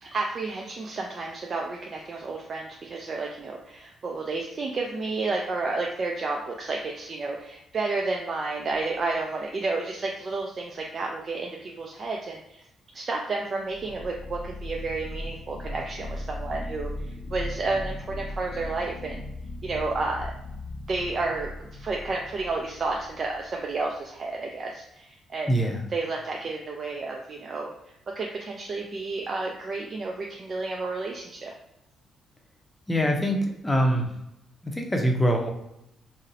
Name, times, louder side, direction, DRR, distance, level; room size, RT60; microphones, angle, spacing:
voice 1, 0.0-12.6 12.9-19.2 19.6-20.3 20.9-27.7 28.2-31.5, right 3 dB, 45° right, 0 dB, 0.4 m, -31 dB
sound 1, 8.7-9.3 13.6-23.8, left 1 dB, 60° left, 0.6 m, -38 dB
voice 2, 25.5-25.8 32.9-34.1 34.6-35.5, equal, 15° left, 2 dB, 0.6 m, -24 dB
2.6 x 2.0 x 3.9 m, 0.84 s
cardioid pair, 90°, 0 cm